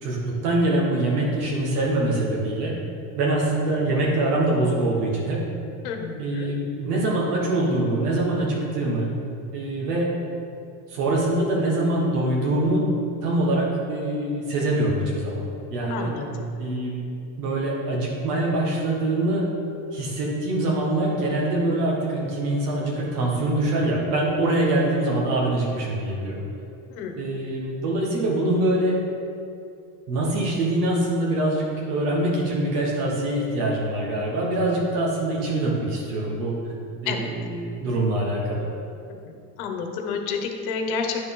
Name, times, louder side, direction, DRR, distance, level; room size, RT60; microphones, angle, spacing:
voice 1, 0.0-2.7 3.2-5.4 6.2-9.1 9.5-10.1 10.9-12.8 13.2-15.4 15.7-16.1 16.6-17.0 17.4-19.4 19.9-26.4 27.2-29.0 30.1-36.5 37.0-38.6, right 1 dB, 90° right, -3 dB, 1.6 m, -24 dB
voice 2, 5.8-6.5 15.9-16.5 26.9-27.1 37.1-37.3 39.2-39.3 39.6-41.3, left 5 dB, 70° left, 3 dB, 1.1 m, -30 dB
10.5 x 4.1 x 3.8 m, 2.5 s
supercardioid pair, 150°, 45 cm